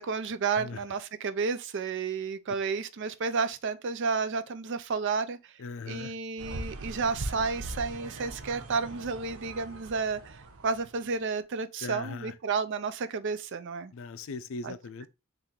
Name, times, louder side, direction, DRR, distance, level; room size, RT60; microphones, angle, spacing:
voice 1, 0.0-5.5 5.9-13.9 14.6-14.7, right 5 dB, 55° right, 0.5 m, -31 dB
voice 2, 5.6-6.1 11.8-12.3 13.9-15.1, left 4 dB, 65° left, 0.4 m, -39 dB
sound 1, 6.4-11.1, right 2 dB, 80° right, 0.8 m, -40 dB
4.4 x 3.0 x 3.7 m
head